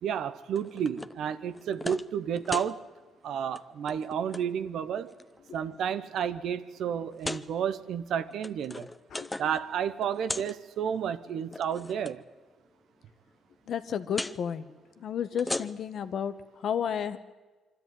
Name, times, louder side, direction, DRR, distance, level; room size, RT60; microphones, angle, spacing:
voice 1, 0.0-2.8 3.2-5.1 5.5-8.9 9.4-12.2, right 8 dB, 75° right, 0.9 m, -31 dB
sound 1, 0.6-1.2 1.5-2.1 2.4-2.7 3.4-3.6 3.9-4.4 5.1-5.6 6.2-6.3 7.1-7.5 8.2-9.6 9.9-10.6 11.4-12.1 14.1-14.4 15.2-16.0, left 2 dB, 15° left, 0.6 m, -37 dB
voice 2, 9.1-9.5 13.7-14.7 15.0-17.2, left 8 dB, 65° left, 1.1 m, -32 dB
24.5 x 13.0 x 9.3 m
cardioid pair, 90°, 0 cm